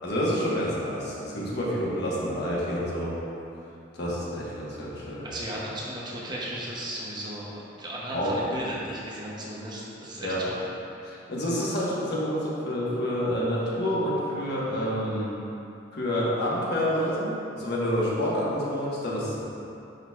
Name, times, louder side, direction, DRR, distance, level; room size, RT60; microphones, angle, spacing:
voice 1, 0.0-3.1 3.9-5.3 8.1-8.6 10.2-10.4 11.0-15.4 15.9-19.4, equal, 60° left, -6 dB, 1.2 m, -28 dB
voice 2, 5.2-10.5, right 1 dB, 25° right, -5 dB, 0.8 m, -35 dB
10.5 x 3.9 x 2.4 m, 2.7 s
head